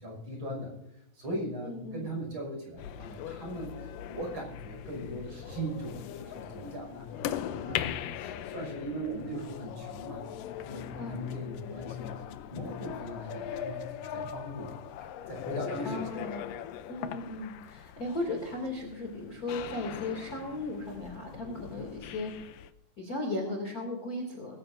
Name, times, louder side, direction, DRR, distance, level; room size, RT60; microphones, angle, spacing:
voice 1, 0.0-7.1 7.4-10.2 10.5-12.2 12.5-16.2, equal, 35° right, 0 dB, 6.6 m, -39 dB
voice 2, 1.6-2.1 10.9-11.2 15.8-16.5 16.9-22.5 23.0-24.6, left 2 dB, 25° left, 1 dB, 2.7 m, -36 dB
sound 1, 2.8-22.7, left 10 dB, 75° left, 2.1 m, -40 dB
22.5 x 14.5 x 2.6 m, 0.85 s
omnidirectional pair, 4.2 m